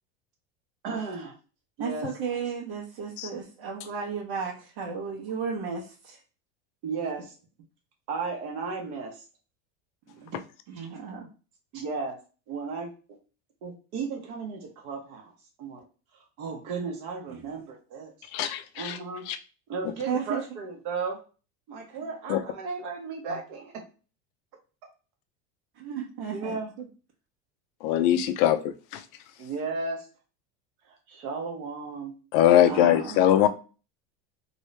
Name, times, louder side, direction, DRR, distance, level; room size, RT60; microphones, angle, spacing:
voice 1, 0.8-1.3 1.8-2.1 6.8-7.3 8.1-9.2 10.3-10.4 10.7-10.9 11.7-12.2 12.5-12.9 13.6-15.3 15.6-15.8 16.4-18.1 18.7-19.2 19.7-21.2 21.7-23.7 26.3-26.7 29.4-30.1 30.9-32.1, right 4 dB, 55° right, 2 dB, 1.1 m, -34 dB
voice 2, 1.8-6.2 10.2-10.3 10.7-11.3 20.1-20.4 25.8-26.6 32.6-33.5, right 6 dB, 75° right, -5 dB, 1.2 m, -34 dB
voice 3, 18.3-19.0 19.3-19.4 22.3-22.4 27.8-28.6 28.9-29.0 32.3-33.5, left 11 dB, 45° left, 10 dB, 0.4 m, -21 dB
3.1 x 2.7 x 3.2 m, 0.35 s
cardioid pair, 165°, 30 cm